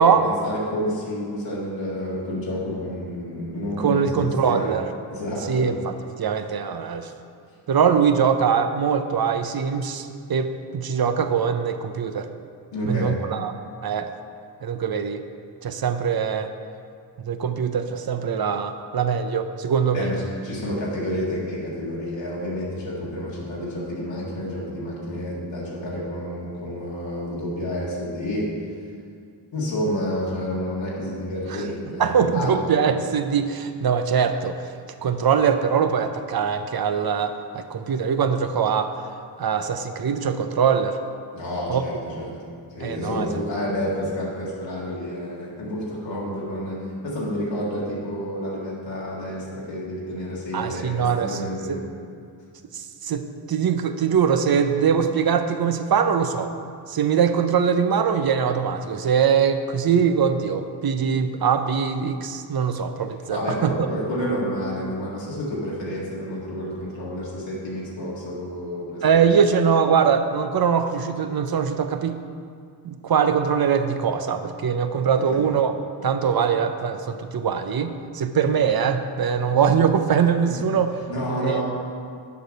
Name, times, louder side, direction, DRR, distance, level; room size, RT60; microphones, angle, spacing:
voice 1, 0.0-4.1 4.4-4.7 5.1-5.7 12.7-13.2 19.9-28.5 29.5-32.6 41.3-42.4 42.8-51.8 63.3-69.3 80.5-80.6 81.1-81.6, equal, 90° left, -6 dB, 2.0 m, -29 dB
voice 2, 3.8-4.9 5.5-5.9 6.2-7.1 7.7-12.3 12.8-13.5 13.8-14.1 14.6-15.2 15.6-16.5 17.2-20.1 31.5-31.6 32.0-34.6 35.0-39.0 39.4-41.0 41.7-41.8 42.8-43.2 43.6-43.7 50.5-51.4 51.7-51.8 52.7-56.5 56.9-63.7 69.0-72.2 72.8-75.7 76.0-80.9 81.4-81.6, right 7 dB, 55° right, 8 dB, 0.6 m, -22 dB
6.9 x 5.0 x 6.5 m, 2.2 s
cardioid pair, 50°, 44 cm